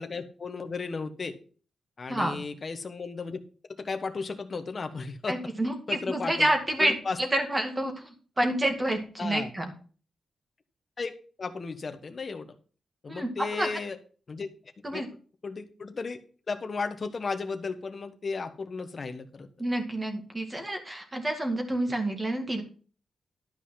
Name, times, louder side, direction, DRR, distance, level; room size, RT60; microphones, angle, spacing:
voice 1, 0.0-1.4 2.0-3.4 3.7-5.4 5.9-6.5 6.8-7.2 9.2-9.5 11.0-12.6 13.0-14.0 14.3-14.5 14.9-15.1 15.4-16.2 16.5-19.5, left 4 dB, 35° left, 8 dB, 1.1 m, -34 dB
voice 2, 5.3-9.7 13.1-13.7 14.8-15.1 19.6-22.6, right 1 dB, 15° right, 4 dB, 2.0 m, -28 dB
12.0 x 5.5 x 5.7 m, 0.40 s
wide cardioid pair, 180°, 0 cm